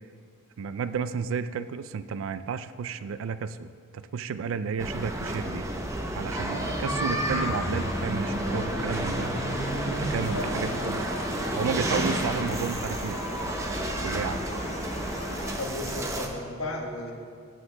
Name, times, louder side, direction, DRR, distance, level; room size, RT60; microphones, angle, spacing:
voice 1, 0.6-5.7 6.2-9.3 9.9-11.1 11.6-13.2 14.0-14.5, right 6 dB, 65° right, 13 dB, 0.3 m, -32 dB
sound 1, 4.8-16.3, right 1 dB, 15° right, 0.6 m, -31 dB
sound 2, 6.3-15.6, left 2 dB, 30° left, 0.7 m, -38 dB
voice 2, 10.2-10.6 15.6-17.1, left 1 dB, 75° left, 0 dB, 1.3 m, -34 dB
16.0 x 7.6 x 2.2 m, 2.4 s
head